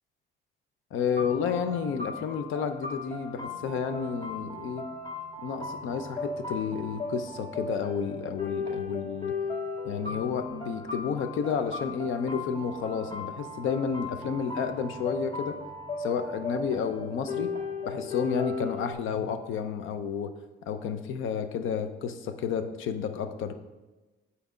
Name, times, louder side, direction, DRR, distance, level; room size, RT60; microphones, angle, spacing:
voice 1, 0.9-4.8 5.4-9.3 9.8-15.6 16.0-17.5 17.9-20.3 20.7-23.5, left 6 dB, 80° left, 9 dB, 0.7 m, -31 dB
sound 1, 1.2-18.9, left 3 dB, 25° left, 1.9 m, -37 dB
8.0 x 4.2 x 4.9 m, 1.2 s
cardioid pair, 90°, 20 cm